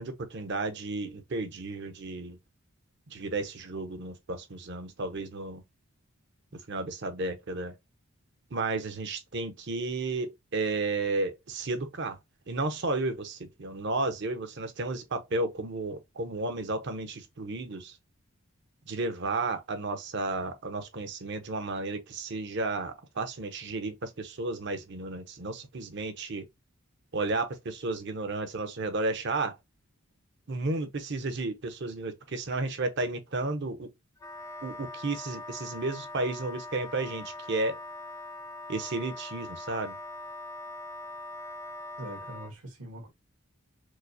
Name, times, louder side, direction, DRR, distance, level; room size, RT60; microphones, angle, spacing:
voice 1, 0.0-2.4 3.1-5.6 6.7-7.7 8.5-12.2 12.5-18.0 18.9-26.4 27.1-29.6 30.5-33.9 34.6-37.8 38.7-39.9, right 3 dB, 50° right, 0.6 m, -33 dB
Wind instrument woodwind instrument, 34.2-42.5, left 2 dB, 15° left, 0.3 m, -42 dB
voice 2, 42.0-43.1, right 1 dB, 75° right, 1.4 m, -42 dB
4.6 x 2.0 x 2.7 m
head